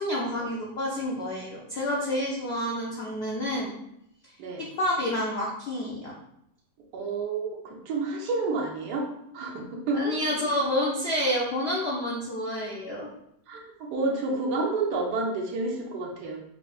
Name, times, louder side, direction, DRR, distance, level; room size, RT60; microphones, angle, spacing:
voice 1, 0.0-3.8 4.6-6.1 9.9-13.1, left 1 dB, 75° left, -3 dB, 0.5 m, -29 dB
voice 2, 6.9-9.1 9.3-10.1 13.5-13.6 13.9-16.4, right 3 dB, 70° right, 0 dB, 1.2 m, -29 dB
5.4 x 2.5 x 2.3 m, 0.79 s
omnidirectional pair, 1.9 m